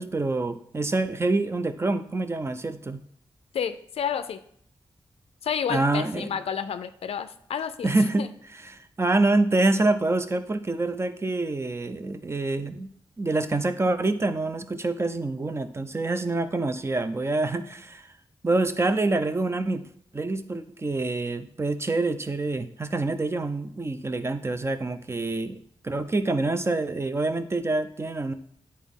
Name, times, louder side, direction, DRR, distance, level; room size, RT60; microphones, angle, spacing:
voice 1, 0.0-3.0 5.7-6.4 7.8-8.3 8.6-12.9 13.2-18.1 18.4-19.8 20.1-25.6 25.8-28.3, right 2 dB, 25° right, 11 dB, 0.5 m, -26 dB
voice 2, 3.5-4.4 5.4-7.9 8.2-8.3, left 8 dB, 80° left, 11 dB, 0.4 m, -30 dB
9.2 x 4.2 x 3.6 m, 0.66 s
wide cardioid pair, 85°, 10 cm